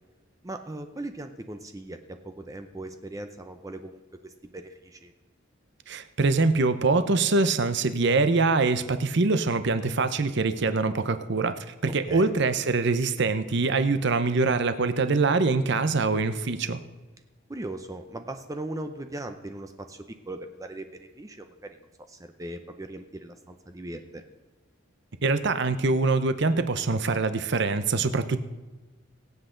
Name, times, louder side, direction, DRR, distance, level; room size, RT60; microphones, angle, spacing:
voice 1, 0.4-5.1 11.9-12.3 17.5-24.2, right 1 dB, 15° right, 7 dB, 0.6 m, -39 dB
voice 2, 5.9-11.6 11.8-16.8 25.2-28.4, right 3 dB, 60° right, 10 dB, 0.8 m, -24 dB
23.5 x 8.0 x 3.9 m, 1.2 s
head